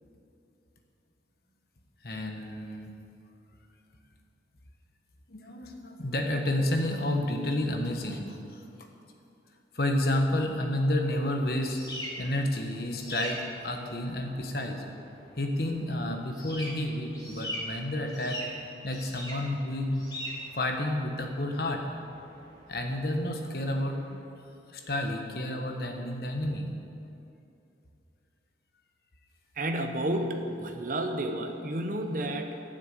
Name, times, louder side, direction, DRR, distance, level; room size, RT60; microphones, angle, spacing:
voice 1, 2.0-2.9 5.3-8.6 9.7-11.8 12.2-14.8 15.4-18.4 18.8-20.0 20.6-21.8 22.7-24.3 24.7-26.7, left 1 dB, 55° left, 3 dB, 1.2 m, -30 dB
sound 1, 11.0-24.2, equal, 20° left, 1.9 m, -42 dB
voice 2, 29.6-32.6, right 1 dB, 45° right, 5 dB, 0.9 m, -31 dB
12.0 x 6.4 x 8.3 m, 2.7 s
head